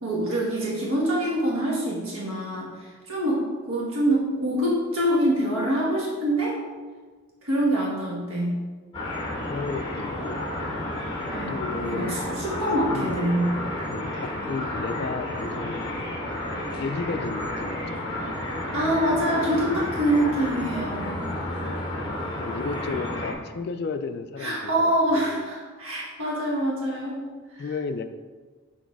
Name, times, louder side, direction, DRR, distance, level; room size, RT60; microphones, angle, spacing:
voice 1, 0.0-6.6 7.4-8.5 11.3-13.5 18.7-21.2 24.4-27.2 27.5-27.7, right 1 dB, 75° right, -4 dB, 1.4 m, -25 dB
sound 1, 8.9-23.3, left 1 dB, 20° left, 1.2 m, -31 dB
voice 2, 9.4-10.4 11.5-12.2 12.6-13.2 13.9-15.9 16.8-18.0 21.7-25.4 27.6-28.1, left 4 dB, 50° left, 9 dB, 0.3 m, -33 dB
6.3 x 3.9 x 4.7 m, 1.4 s
head